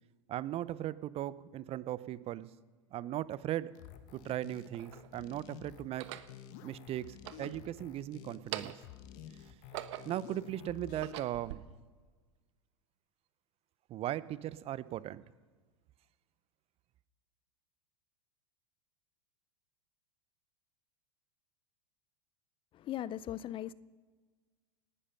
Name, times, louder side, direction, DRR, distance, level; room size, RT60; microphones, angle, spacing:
voice 1, 0.3-2.5 2.9-3.7 4.1-6.1 6.6-8.7 9.3-9.5 10.0-11.6 13.9-15.2, right 13 dB, 35° right, 18 dB, 0.7 m, -38 dB
sound 1, 3.3-3.4 4.3-5.1 5.8-6.3 7.1-8.0 8.3-9.0 9.4-10.3 10.8-11.6, right 14 dB, 65° right, 1.1 m, -44 dB
sound 2, 3.7-11.1, left 10 dB, 55° left, 1.3 m, -51 dB
voice 2, 22.7-23.7, left 12 dB, 30° left, 20 dB, 0.5 m, -38 dB
18.5 x 11.0 x 5.8 m, 1.4 s
hypercardioid pair, 95°, 16 cm